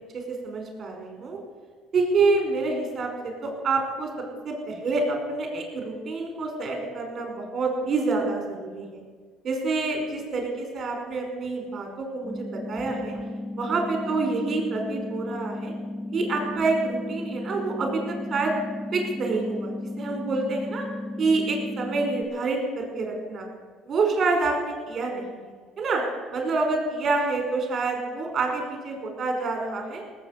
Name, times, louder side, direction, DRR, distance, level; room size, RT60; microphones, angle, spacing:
voice 1, 0.4-1.4 1.9-9.0 9.4-13.2 13.6-15.7 16.1-18.5 18.9-20.9 21.2-23.5 23.9-25.4 25.8-26.0 26.3-30.0, right 3 dB, 40° right, 3 dB, 5.0 m, -27 dB
sound 1, 12.2-22.2, left 1 dB, 25° left, 2.0 m, -34 dB
18.5 x 8.4 x 8.3 m, 1.5 s
cardioid pair, 105°, 0 cm